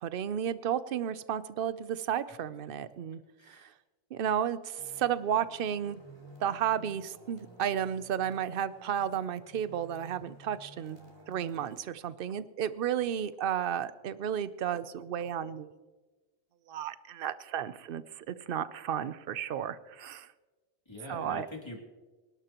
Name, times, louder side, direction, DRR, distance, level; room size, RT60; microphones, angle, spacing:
voice 1, 0.0-3.2 3.5-3.7 4.1-6.0 6.4-11.0 11.3-15.7 16.7-20.3 21.1-21.5, right 9 dB, 55° right, 14 dB, 0.8 m, -33 dB
voice 2, 3.4-3.7 20.9-21.8, left 1 dB, 25° left, 0 dB, 2.8 m, -43 dB
sound 1, 4.8-11.8, right 2 dB, 25° right, 3.2 m, -54 dB
25.5 x 12.0 x 3.0 m, 1.2 s
omnidirectional pair, 1.2 m